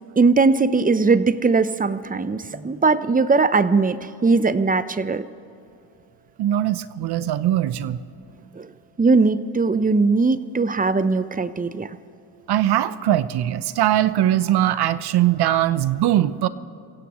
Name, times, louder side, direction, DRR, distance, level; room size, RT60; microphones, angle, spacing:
voice 1, 0.2-5.2 8.6-8.7 9.0-11.9, right 4 dB, 20° right, 13 dB, 0.7 m, -19 dB
voice 2, 6.4-8.0 12.5-16.5, right 12 dB, 65° right, 15 dB, 0.8 m, -21 dB
28.0 x 16.5 x 3.1 m, 2.7 s
cardioid pair, 85°, 42 cm